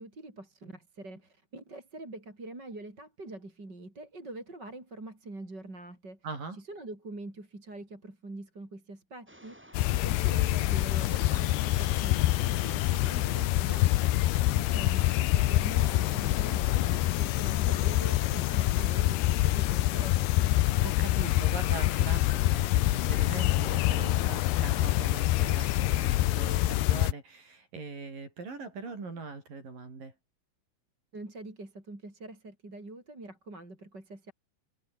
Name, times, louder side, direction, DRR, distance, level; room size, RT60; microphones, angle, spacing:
voice 1, 0.0-6.2 6.5-14.2 14.6-20.3 31.1-34.3, right 2 dB, 20° right, 6.6 m, -44 dB
voice 2, 6.2-6.6 20.6-30.1, right 4 dB, 50° right, 8.2 m, -41 dB
sound 1, 9.3-25.8, equal, 5° right, 2.8 m, -54 dB
sound 2, 9.7-27.1, left 16 dB, 75° left, 2.7 m, -26 dB
sound 3, 14.6-20.2, right 8 dB, 85° right, 6.3 m, -55 dB
omnidirectional pair, 5.2 m